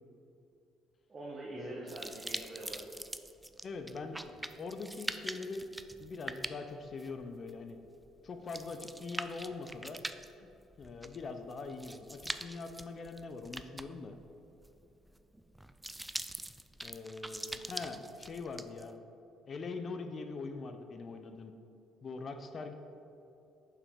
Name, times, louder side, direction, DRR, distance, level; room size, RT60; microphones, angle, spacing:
voice 1, 1.1-2.9, right 2 dB, 35° right, -3 dB, 1.1 m, -44 dB
sound 1, 1.9-18.9, right 1 dB, 10° right, 0.3 m, -43 dB
voice 2, 3.6-5.7 6.0-7.8 8.2-10.0 10.4-14.1 16.8-19.0 19.5-21.5 22.0-22.7, left 3 dB, 45° left, 7 dB, 0.6 m, -42 dB
6.6 x 5.8 x 3.6 m, 2.8 s
supercardioid pair, 75°, 0 cm